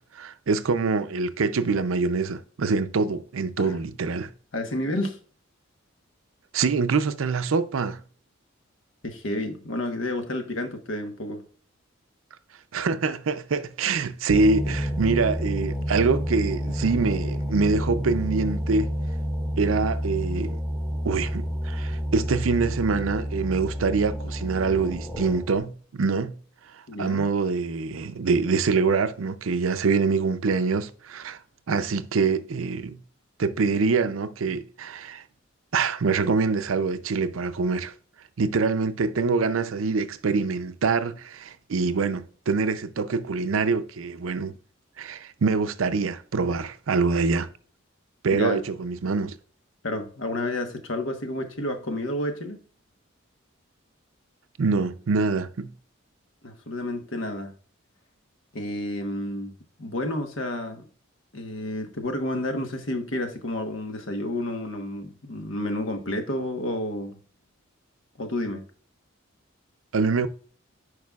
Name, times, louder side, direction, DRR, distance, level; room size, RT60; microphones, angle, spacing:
voice 1, 0.0-4.3 6.5-8.0 12.7-18.9 19.6-20.6 21.0-26.3 27.0-31.4 31.7-33.0 33.4-35.2 35.7-37.9 38.4-44.5 45.0-47.5 48.2-49.3 54.6-55.7 69.9-70.3, right 4 dB, 80° right, 0.5 m, -25 dB
voice 2, 4.5-5.2 9.0-11.4 26.9-27.3 48.3-48.6 49.8-52.6 56.4-57.5 58.5-59.5 59.8-60.9 61.3-67.2 68.2-68.6, left 1 dB, 70° left, 1.2 m, -30 dB
sound 1, 14.3-25.6, equal, 15° left, 1.4 m, -29 dB
9.5 x 4.8 x 2.4 m
head